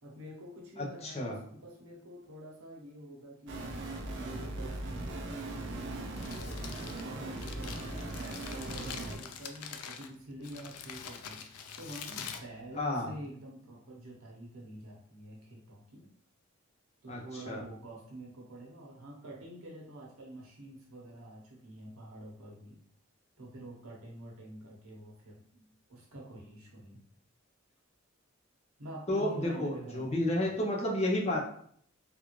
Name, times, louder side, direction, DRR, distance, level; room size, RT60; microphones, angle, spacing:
voice 1, 0.0-3.7 4.1-16.0 17.0-22.8 23.4-27.0 28.8-30.6, right 1 dB, 75° right, -1 dB, 0.9 m, -47 dB
voice 2, 0.8-1.3 12.8-13.1 17.1-17.6 29.1-31.4, left 1 dB, 30° left, -1 dB, 0.6 m, -31 dB
sound 1, 3.5-9.2, right 2 dB, 55° right, 0.5 m, -39 dB
Crumpling crinkling, 6.1-13.3, left 7 dB, 90° left, 0.4 m, -45 dB
3.5 x 2.4 x 3.0 m, 0.63 s
head